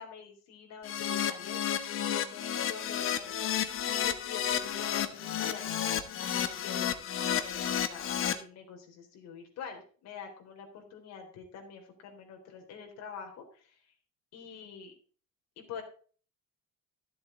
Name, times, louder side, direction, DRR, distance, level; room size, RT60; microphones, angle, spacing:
voice 1, 0.0-3.4 3.9-5.7 6.2-13.8 14.3-14.9 15.6-15.8, left 6 dB, 65° left, 2 dB, 3.7 m, -46 dB
Keyboard (musical), 0.8-8.3, left 9 dB, 45° left, 1.1 m, -31 dB
13.0 x 7.6 x 3.8 m, 0.40 s
cardioid pair, 175°, 29 cm